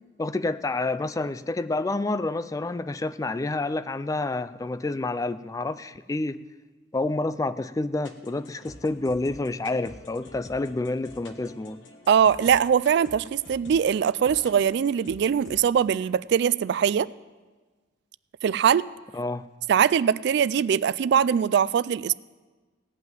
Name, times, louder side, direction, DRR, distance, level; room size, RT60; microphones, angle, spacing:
voice 1, 0.2-6.4 6.9-11.8 19.1-19.5, left 2 dB, 20° left, 14 dB, 0.3 m, -28 dB
sound 1, 8.0-15.7, left 2 dB, 80° left, 1.2 m, -48 dB
voice 2, 12.1-17.1 18.4-18.9 19.7-22.1, right 8 dB, 65° right, 19 dB, 0.3 m, -22 dB
16.5 x 5.8 x 9.1 m, 1.3 s
head